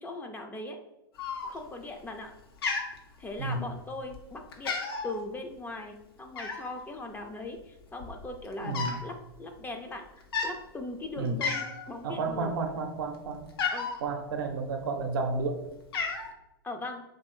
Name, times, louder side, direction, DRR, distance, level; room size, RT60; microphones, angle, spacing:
voice 1, 0.0-0.8 1.5-2.3 3.2-4.8 5.0-9.1 9.4-12.5 13.7-13.9 16.6-17.0, left 2 dB, 15° left, 4 dB, 0.5 m, -39 dB
Cat, 1.2-1.8 2.1-2.4 2.6-3.6 4.1-4.3 4.5-5.2 6.4-6.8 7.6-7.7 7.9-9.1 9.3-9.6 10.2-10.6 11.0-11.1 11.4-11.9 12.3-14.0 14.8-15.4 15.6-16.3, left 5 dB, 70° left, 0.8 m, -33 dB
voice 2, 3.4-3.7 8.6-9.0 11.2-11.4 12.0-13.4 14.0-15.6, right 3 dB, 65° right, 4 dB, 0.7 m, -31 dB
3.1 x 2.7 x 4.3 m, 0.90 s
hypercardioid pair, 100°, 13 cm